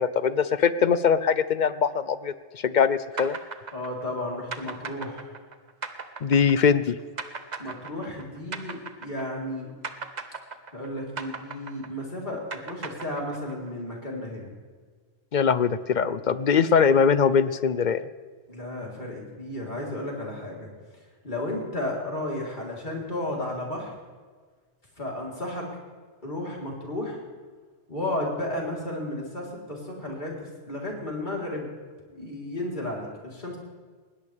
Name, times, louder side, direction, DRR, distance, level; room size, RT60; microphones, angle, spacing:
voice 1, 0.0-3.4 6.2-6.9 15.3-18.0, left 6 dB, 50° left, 14 dB, 0.6 m, -22 dB
sound 1, 3.2-9.5 9.8-13.7, right 4 dB, 35° right, 1.0 m, -37 dB
voice 2, 3.7-5.3 7.6-9.7 10.7-14.5 18.5-20.7 21.2-24.0 25.0-25.7 26.2-27.2 27.9-31.7 32.1-33.6, left 1 dB, 35° left, -3 dB, 4.0 m, -33 dB
20.5 x 17.5 x 3.5 m, 1.5 s
omnidirectional pair, 1.3 m